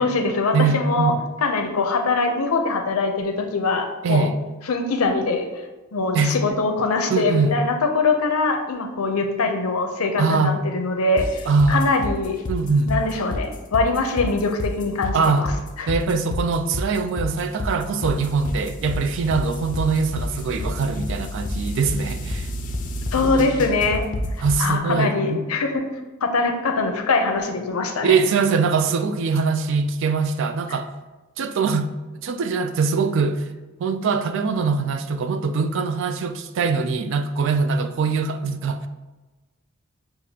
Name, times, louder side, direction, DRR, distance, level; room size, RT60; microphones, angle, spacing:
voice 1, 0.0-1.1 1.4-4.3 4.7-5.6 5.9-12.4 12.9-15.5 15.8-15.9 23.1-24.1 24.6-25.8 26.2-28.2, left 3 dB, 80° left, 0.6 m, -23 dB
voice 2, 0.5-1.2 4.0-4.4 6.1-6.4 7.1-7.6 10.2-10.6 11.5-11.8 12.5-12.9 15.1-15.5 15.9-22.5 23.2-23.4 24.4-25.5 28.0-30.9 31.4-33.4 33.8-38.9, right 4 dB, 60° right, 0.3 m, -22 dB
sound 1, 11.2-24.7, left 1 dB, 35° left, 0.4 m, -29 dB
6.6 x 2.5 x 2.8 m
head